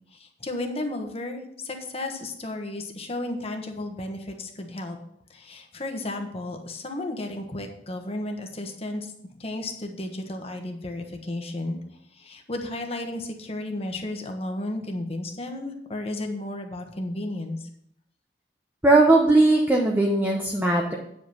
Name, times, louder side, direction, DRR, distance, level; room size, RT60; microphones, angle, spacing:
voice 1, 0.1-5.0 5.3-11.8 12.1-17.6, left 1 dB, 35° left, 4 dB, 1.3 m, -33 dB
voice 2, 18.8-20.9, right 2 dB, 10° right, 0 dB, 0.8 m, -19 dB
8.9 x 5.3 x 5.8 m, 0.74 s
head